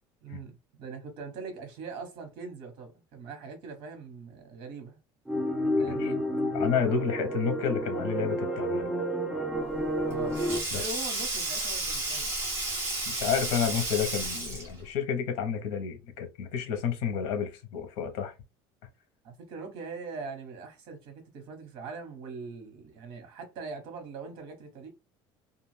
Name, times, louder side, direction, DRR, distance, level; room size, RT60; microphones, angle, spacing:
voice 1, 0.2-5.0 5.8-6.2 10.0-10.4 10.7-12.4 19.2-24.9, right 4 dB, 55° right, 1.2 m, -42 dB
sound 1, 5.3-10.6, equal, 5° right, 0.6 m, -30 dB
voice 2, 5.8-6.1 6.5-8.9 10.7-10.8 13.0-18.3, left 7 dB, 75° left, 0.9 m, -30 dB
Sink (filling or washing), 9.7-14.8, right 2 dB, 20° right, 1.1 m, -32 dB
2.5 x 2.4 x 3.2 m
cardioid pair, 170°, 10 cm